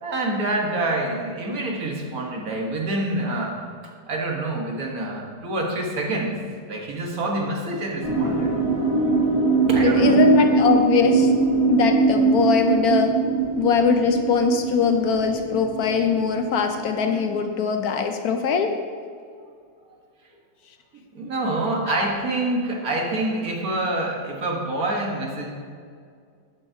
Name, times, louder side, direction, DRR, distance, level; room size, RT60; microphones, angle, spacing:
voice 1, 0.0-3.6 4.1-8.5 9.7-10.3 21.1-25.5, right 2 dB, 60° right, 0 dB, 1.7 m, -26 dB
sound 1, 8.0-17.4, right 4 dB, 15° right, 2.7 m, -22 dB
voice 2, 9.8-11.3 11.7-13.1 13.6-18.8 21.9-22.0, left 5 dB, 70° left, 6 dB, 1.0 m, -21 dB
11.0 x 9.5 x 2.7 m, 2.1 s
omnidirectional pair, 1.8 m